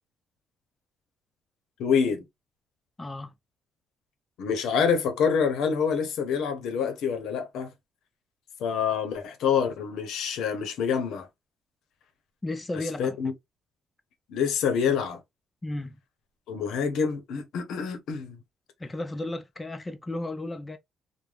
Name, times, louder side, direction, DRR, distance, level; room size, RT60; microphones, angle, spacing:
voice 1, 1.8-2.3 4.4-7.7 8.6-11.3 13.0-13.3 14.3-15.2 16.5-18.4, left 6 dB, 85° left, 0.7 m, -26 dB
voice 2, 3.0-3.3 12.4-13.2 15.6-16.0 18.8-20.8, left 2 dB, 20° left, 0.4 m, -34 dB
3.2 x 2.1 x 2.4 m
cardioid pair, 90°, 0 cm